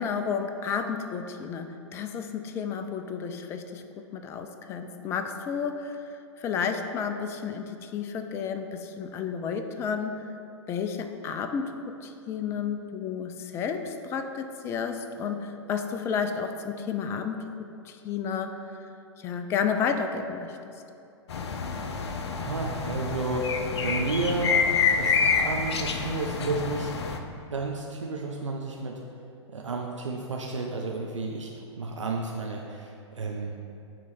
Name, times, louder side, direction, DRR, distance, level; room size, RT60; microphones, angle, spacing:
voice 1, 0.0-6.0 6.4-10.2 10.7-18.6 19.2-20.6, left 6 dB, 15° left, 7 dB, 0.3 m, -31 dB
sound 1, 21.3-27.2, left 5 dB, 60° left, 0.6 m, -27 dB
voice 2, 22.4-23.5 23.8-24.6 25.0-26.9 27.5-29.0 29.5-31.5 31.8-33.5, right 3 dB, 80° right, 0 dB, 0.6 m, -31 dB
8.9 x 3.1 x 4.2 m, 2.7 s
figure-of-eight pair, 110°, 16 cm